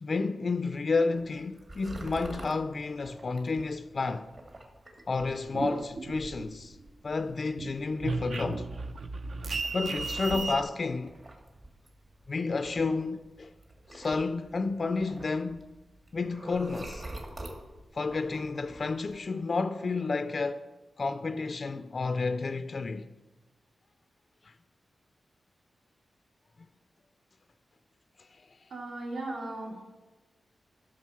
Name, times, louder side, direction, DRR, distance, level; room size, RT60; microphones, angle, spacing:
voice 1, 0.0-4.3 5.1-6.8 7.0-8.7 9.7-11.1 12.3-13.5 13.9-15.6 16.1-17.0 17.9-20.7 21.0-23.1 24.4-24.5, left 4 dB, 45° left, 0.4 m, -31 dB
sound 1, 1.1-19.2, right 1 dB, 40° right, 2.0 m, -48 dB
sound 2, 5.3-6.9 7.2-10.6, right 3 dB, 65° right, 0.7 m, -35 dB
voice 2, 28.7-29.9, right 2 dB, 85° right, 2.6 m, -37 dB
12.5 x 6.3 x 5.7 m
wide cardioid pair, 110°, 0 cm